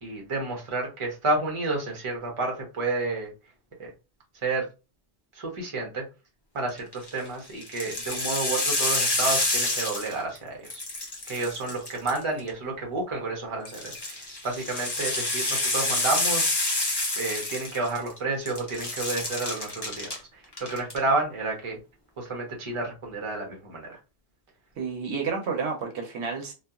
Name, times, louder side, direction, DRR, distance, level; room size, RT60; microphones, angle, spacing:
voice 1, 0.0-3.3 3.8-3.9 4.4-4.7 5.3-6.0 6.5-10.8 11.3-16.8 17.2-21.8 22.2-24.0, right 3 dB, 30° right, 1 dB, 0.7 m, -30 dB
sound 1, 6.8-7.1 7.6-10.4 10.6-12.5 13.6-18.2 18.5-20.2 20.5-21.0, left 2 dB, 25° left, 0.6 m, -28 dB
voice 2, 24.8-26.5, right 5 dB, 70° right, 2 dB, 0.9 m, -30 dB
2.7 x 2.3 x 2.3 m, 0.30 s
omnidirectional pair, 1.2 m